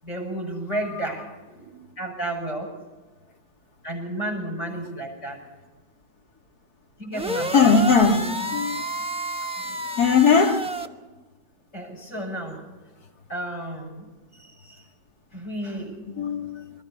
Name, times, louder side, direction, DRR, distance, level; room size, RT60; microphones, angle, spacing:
voice 1, 0.0-2.8 3.8-5.4 7.0-7.8 9.6-9.9 11.7-12.7 13.3-14.9 15.3-16.0, right 1 dB, 40° left, 6.6 m, -33 dB
sound 1, 7.1-10.9, right 1 dB, 5° right, 0.7 m, -30 dB
voice 2, 7.5-8.8 10.0-10.7 16.1-16.6, left 5 dB, 60° left, 2.7 m, -19 dB
28.5 x 22.5 x 4.3 m
omnidirectional pair, 1.9 m